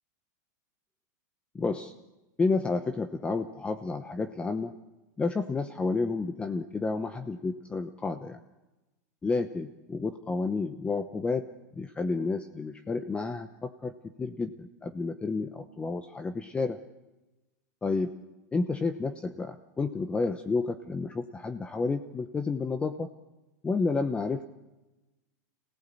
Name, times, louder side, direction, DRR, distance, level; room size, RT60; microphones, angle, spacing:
voice 1, 1.5-1.9 2.4-4.7 5.2-8.4 9.2-11.5 11.8-13.9 14.2-16.8 17.8-18.1 18.5-23.1 23.6-24.5, left 3 dB, 10° left, 8 dB, 0.9 m, -30 dB
26.0 x 18.0 x 8.5 m, 1.1 s
supercardioid pair, 145°, 9 cm